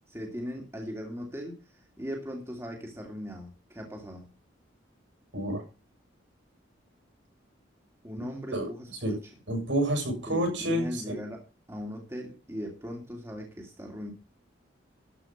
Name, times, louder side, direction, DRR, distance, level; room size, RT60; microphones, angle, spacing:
voice 1, 0.1-4.3 8.0-9.2 10.3-11.4 11.7-14.1, equal, 15° right, 0 dB, 2.5 m, -39 dB
voice 2, 8.5-9.2 9.5-11.2, right 1 dB, 70° right, 2 dB, 7.4 m, -29 dB
13.5 x 5.6 x 7.9 m, 0.31 s
head